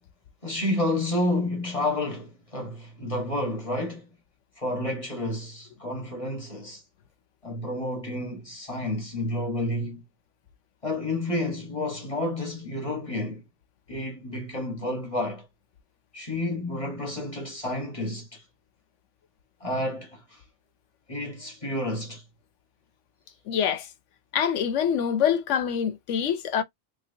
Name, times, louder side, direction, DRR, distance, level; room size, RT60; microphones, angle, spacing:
voice 1, 0.4-4.1 4.6-6.8 7.4-10.0 10.8-13.4 13.9-15.5 16.1-18.4 19.6-20.4 21.1-22.2, left 1 dB, 30° left, 1.3 m, -30 dB
voice 2, 23.5-23.9 24.3-26.6, left 8 dB, 90° left, 1.0 m, -25 dB
3.3 x 3.1 x 2.7 m
omnidirectional pair, 1.2 m